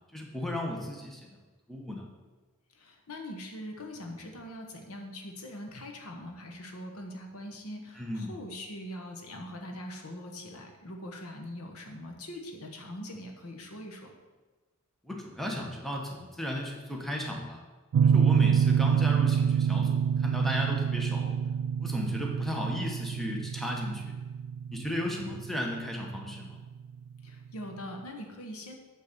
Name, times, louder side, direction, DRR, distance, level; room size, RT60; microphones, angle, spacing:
voice 1, 0.1-1.4 1.7-2.1 8.0-8.3 15.0-17.6 18.0-21.4 21.8-24.1 24.7-26.6, left 1 dB, ahead, -1 dB, 1.1 m, -35 dB
voice 2, 2.7-14.1 27.2-28.7, left 1 dB, 80° left, 3 dB, 1.2 m, -42 dB
sound 1, 17.9-26.6, right 7 dB, 70° right, 0.3 m, -27 dB
8.4 x 3.9 x 6.7 m, 1.2 s
head